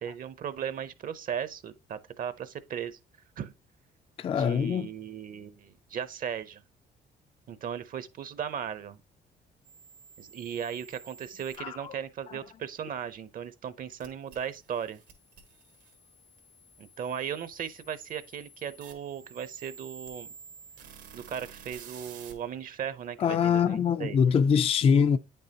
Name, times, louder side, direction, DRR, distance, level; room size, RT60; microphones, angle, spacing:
voice 1, 0.0-3.0 3.4-3.5 4.3-6.6 7.5-9.0 10.2-15.0 16.8-20.3 21.1-24.2, right 8 dB, 55° right, 0.6 m, -37 dB
voice 2, 4.2-4.9 11.6-11.9 23.2-25.2, left 7 dB, 35° left, 0.3 m, -24 dB
sound 1, 9.6-11.6 14.0-22.3, right 6 dB, 90° right, 1.4 m, -51 dB
8.8 x 5.4 x 2.8 m
cardioid pair, 100°, 18 cm